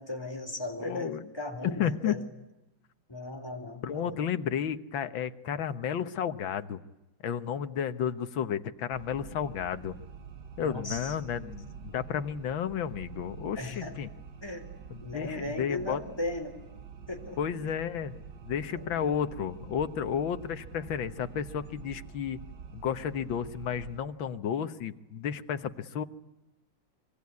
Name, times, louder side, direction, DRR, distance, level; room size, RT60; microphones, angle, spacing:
voice 1, 0.0-2.2 3.1-4.2 10.6-11.1 13.6-13.9 14.4-14.6 15.0-16.6 17.1-17.4 18.7-19.2, left 2 dB, 10° left, 4 dB, 4.0 m, -37 dB
voice 2, 0.8-1.3 1.6-2.2 3.8-6.8 7.2-9.9 10.6-14.1 14.9-16.0 17.4-22.4 22.7-26.0, left 8 dB, 80° left, 11 dB, 1.9 m, -32 dB
sound 1, 8.9-24.0, right 6 dB, 65° right, 2.0 m, -47 dB
26.0 x 24.0 x 9.6 m, 0.95 s
omnidirectional pair, 2.1 m